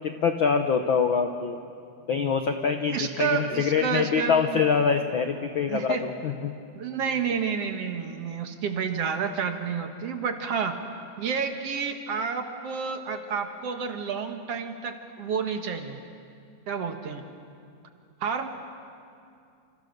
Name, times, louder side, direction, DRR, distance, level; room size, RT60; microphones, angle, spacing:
voice 1, 0.0-1.6 2.1-6.5, left 6 dB, 65° left, 6 dB, 1.2 m, -25 dB
voice 2, 2.9-4.6 5.7-6.1 6.8-10.8 11.2-16.0 16.7-17.2 18.2-18.5, right 6 dB, 60° right, 5 dB, 2.3 m, -30 dB
29.5 x 28.0 x 6.6 m, 2.4 s
omnidirectional pair, 3.5 m